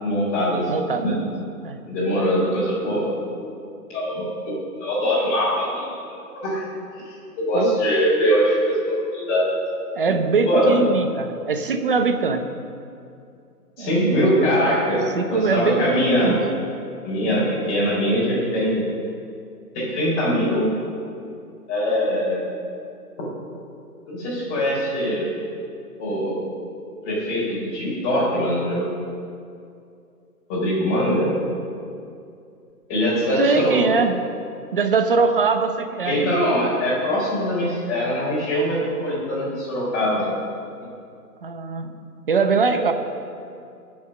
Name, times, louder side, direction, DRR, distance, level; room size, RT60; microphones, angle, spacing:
voice 1, 0.0-0.7 1.0-1.1 1.9-3.2 3.9-6.6 7.0-9.5 10.5-10.8 13.8-15.0 15.3-16.4 17.0-18.9 19.7-20.7 21.7-22.4 24.1-25.3 26.0-26.3 27.0-28.9 30.5-31.4 32.9-33.8 36.0-40.3 42.7-42.8, equal, 15° left, -7 dB, 4.3 m, -22 dB
voice 2, 0.7-1.2 1.6-1.8 7.5-7.8 9.9-12.4 13.8-14.7 15.1-16.4 33.4-34.2 34.7-36.3 41.4-41.9 42.3-42.9, right 4 dB, 35° right, 8 dB, 0.8 m, -22 dB
20.0 x 7.1 x 6.5 m, 2.5 s
hypercardioid pair, 170°, 48 cm